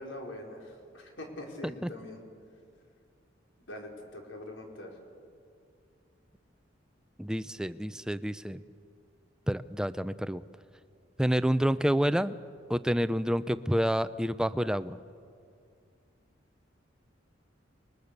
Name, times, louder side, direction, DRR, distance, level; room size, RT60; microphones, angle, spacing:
voice 1, 0.0-2.2 3.7-5.0, left 1 dB, 80° left, 0 dB, 4.6 m, -43 dB
voice 2, 7.2-8.6 9.5-10.4 11.2-12.3 12.7-15.0, equal, 5° right, 14 dB, 0.5 m, -28 dB
30.0 x 21.5 x 6.7 m, 2.3 s
head